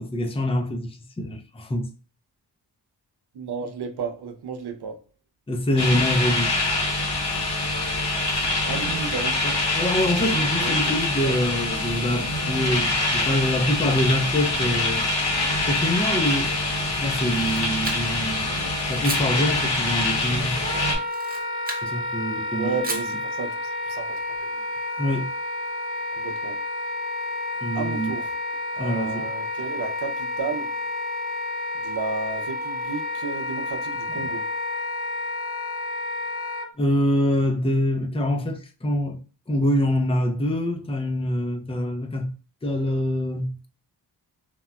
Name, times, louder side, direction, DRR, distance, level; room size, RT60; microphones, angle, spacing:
voice 1, 0.0-1.9 5.5-6.5 9.4-15.1 15.7-18.5 18.9-20.7 21.8-22.7 25.0-25.3 27.6-28.1 28.8-29.3 36.8-39.2 39.5-42.3 42.6-43.6, left 1 dB, 15° left, 0.5 m, -25 dB
voice 2, 3.3-5.0 8.7-9.4 10.2-11.7 22.5-24.5 26.2-26.6 27.7-28.4 28.8-30.7 31.8-34.4, right 5 dB, 65° right, 0.7 m, -33 dB
sound 1, 5.8-21.0, left 2 dB, 80° left, 1.2 m, -25 dB
Camera, 17.1-18.3 19.0-19.3 21.0-21.9 22.8-23.2, right 2 dB, 20° right, 0.8 m, -34 dB
Wind instrument woodwind instrument, 20.6-36.7, left 2 dB, 60° left, 0.9 m, -30 dB
3.2 x 2.2 x 2.3 m
cardioid pair, 60°, 43 cm